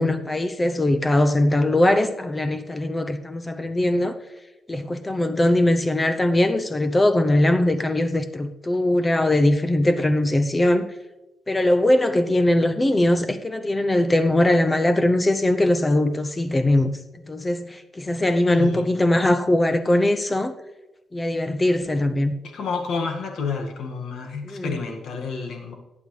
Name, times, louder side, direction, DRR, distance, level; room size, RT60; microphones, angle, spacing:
voice 1, 0.0-4.1 4.7-10.9 11.5-16.9 17.2-20.5 21.1-22.3 24.4-24.8, left 1 dB, 20° left, 0.7 m, -21 dB
voice 2, 18.5-18.8 22.5-25.7, left 5 dB, 70° left, 1.9 m, -29 dB
18.5 x 8.5 x 3.3 m
cardioid pair, 110°, 0 cm